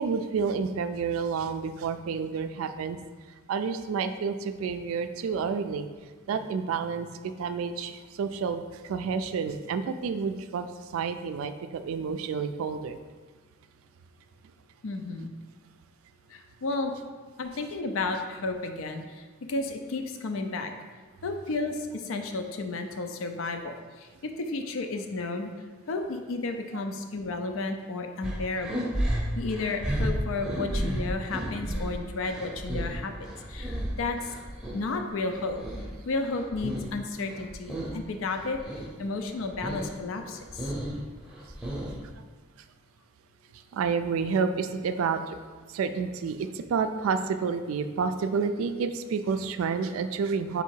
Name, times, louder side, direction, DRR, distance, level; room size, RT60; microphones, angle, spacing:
voice 1, 0.0-3.0 3.5-5.9 6.3-13.0 15.2-15.3 43.7-45.4 45.7-50.6, right 5 dB, 85° right, 10 dB, 0.3 m, -29 dB
voice 2, 14.8-15.3 16.3-16.9 17.4-19.2 19.5-20.7 21.2-25.5 25.9-28.9 29.4-34.3 34.7-35.6 36.0-38.6 39.0-40.7, left 3 dB, 75° left, 5 dB, 0.4 m, -32 dB
sound 1, 28.2-34.8 35.2-37.0 37.2-38.0 38.3-38.9 39.3-39.9 40.3-42.1, right 1 dB, 5° right, 0.7 m, -33 dB
4.0 x 2.8 x 4.5 m, 1.4 s
head